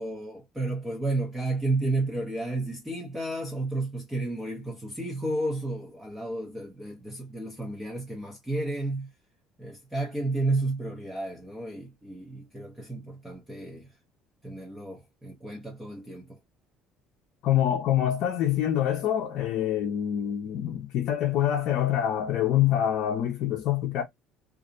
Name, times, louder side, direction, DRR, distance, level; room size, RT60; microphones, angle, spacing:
voice 1, 0.0-9.1 9.6-13.9 14.4-16.4, right 2 dB, 10° right, 0.6 m, -32 dB
voice 2, 17.4-24.0, left 11 dB, 60° left, 0.5 m, -25 dB
2.5 x 2.0 x 2.6 m
cardioid pair, 160°, 0 cm